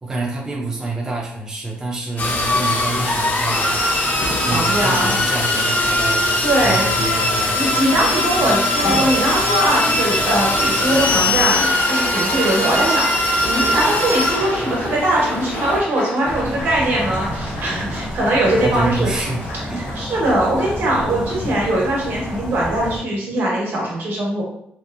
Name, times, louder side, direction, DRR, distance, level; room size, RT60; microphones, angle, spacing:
voice 1, 0.0-3.8 4.4-6.2 6.6-7.8 18.6-19.4 19.7-19.8, right 2 dB, 15° right, -3 dB, 0.4 m, -27 dB
sound 1, 2.2-15.8, left 2 dB, 50° left, 0.6 m, -20 dB
voice 2, 4.5-5.1 6.4-6.9 7.5-19.1 19.7-24.4, right 1 dB, 65° right, -3 dB, 1.0 m, -21 dB
Applause, 8.8-23.5, equal, 75° left, 1.2 m, -33 dB
sound 2, 16.2-23.0, equal, 15° left, 1.1 m, -30 dB
2.8 x 2.3 x 2.2 m, 0.75 s
cardioid pair, 120°, 4 cm